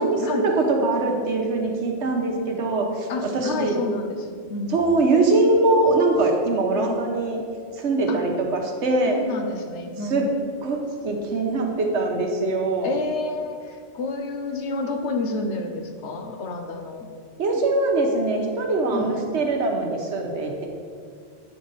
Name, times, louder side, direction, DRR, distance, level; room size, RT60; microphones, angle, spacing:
voice 1, 0.0-3.1 3.3-3.8 4.7-7.4 7.8-9.2 10.1-10.2 10.6-10.8 11.0-13.0 17.4-20.7, right 2 dB, 80° right, 2 dB, 1.2 m, -22 dB
voice 2, 3.1-4.7 8.1-8.2 9.1-10.3 12.8-17.1 18.9-19.3, left 3 dB, 75° left, 4 dB, 1.0 m, -29 dB
8.5 x 5.0 x 4.0 m, 2.1 s
omnidirectional pair, 1.2 m